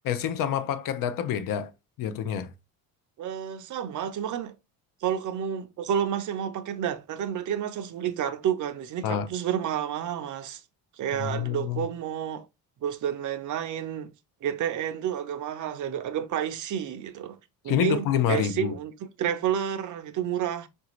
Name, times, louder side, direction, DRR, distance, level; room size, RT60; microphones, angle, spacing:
voice 1, 0.1-1.7 2.0-2.5 9.0-9.3 11.2-11.9 17.7-18.8, left 9 dB, 55° left, 0.5 m, -27 dB
voice 2, 3.2-4.5 5.0-10.6 11.0-12.5 12.8-14.1 14.4-17.4 17.6-20.7, right 9 dB, 50° right, 0.5 m, -30 dB
4.7 x 2.6 x 3.0 m
cardioid pair, 150°, 40 cm